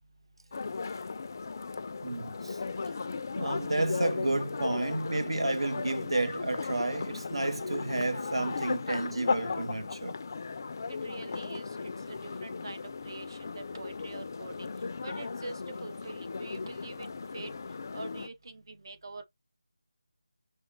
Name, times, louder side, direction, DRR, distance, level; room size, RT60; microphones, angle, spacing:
sound 1, 0.5-18.3, left 4 dB, 40° left, 0.4 m, -36 dB
voice 1, 2.0-2.6 3.4-10.2, right 2 dB, 90° right, 0.5 m, -31 dB
voice 2, 10.9-14.5 15.0-17.5 17.9-19.2, right 2 dB, 55° right, 0.8 m, -44 dB
5.3 x 3.2 x 2.7 m
figure-of-eight pair, 165°, 3 cm